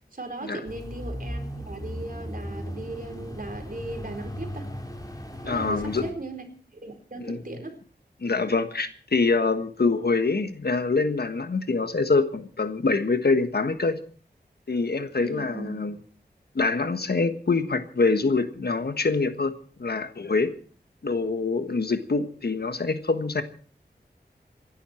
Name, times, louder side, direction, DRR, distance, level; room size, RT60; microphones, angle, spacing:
voice 1, 0.1-4.7 5.4-6.5 6.8-7.8 15.2-15.9, right 2 dB, 55° right, 4 dB, 4.4 m, -37 dB
sound 1, 0.6-6.1, equal, 20° left, 4.3 m, -37 dB
voice 2, 5.4-6.1 7.2-7.4 8.2-14.0 14.7-15.9 16.5-20.5 21.0-23.4, left 3 dB, 70° left, 9 dB, 1.5 m, -25 dB
26.5 x 11.5 x 4.5 m, 0.42 s
wide cardioid pair, 65°, 17 cm